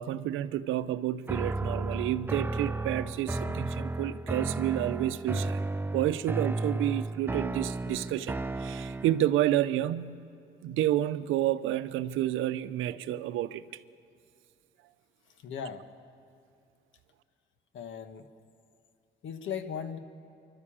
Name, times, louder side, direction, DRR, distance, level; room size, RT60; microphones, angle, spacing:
voice 1, 0.0-5.6 5.9-10.3 10.6-13.6, right 13 dB, 90° right, 0.7 m, -30 dB
sound 1, 1.3-9.3, right 2 dB, 10° right, 0.4 m, -33 dB
voice 2, 15.4-15.8 17.7-18.3 19.2-20.0, left 7 dB, 70° left, 1.5 m, -37 dB
27.5 x 12.0 x 8.7 m
cardioid pair, 90°, 20 cm